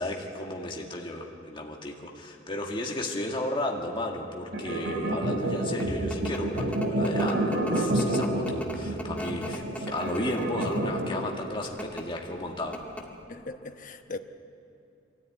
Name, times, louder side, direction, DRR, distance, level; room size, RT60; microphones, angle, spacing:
voice 1, 0.0-12.8, left 1 dB, 25° left, 1.9 m, -34 dB
sound 1, 4.5-11.3, right 1 dB, 65° right, 3.0 m, -28 dB
sound 2, 5.5-10.9 11.6-12.0 12.4-12.5 12.7-13.2, left 1 dB, 10° left, 1.7 m, -39 dB
voice 2, 13.3-14.2, left 3 dB, 45° left, 1.0 m, -39 dB
23.0 x 14.0 x 9.4 m
head